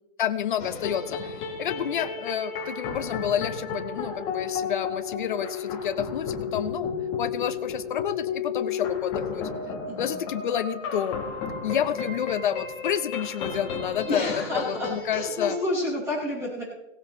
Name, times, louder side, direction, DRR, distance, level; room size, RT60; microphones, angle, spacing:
voice 1, 0.2-6.9 7.2-9.5 10.0-11.2 11.6-15.6, left 9 dB, 40° left, 11 dB, 0.7 m, -29 dB
sound 1, 0.6-15.6, left 5 dB, 15° left, 1.4 m, -33 dB
voice 2, 9.9-10.2 14.0-16.6, left 1 dB, 10° right, -6 dB, 4.8 m, -30 dB
17.5 x 17.0 x 3.1 m, 0.96 s
hypercardioid pair, 170°, 38 cm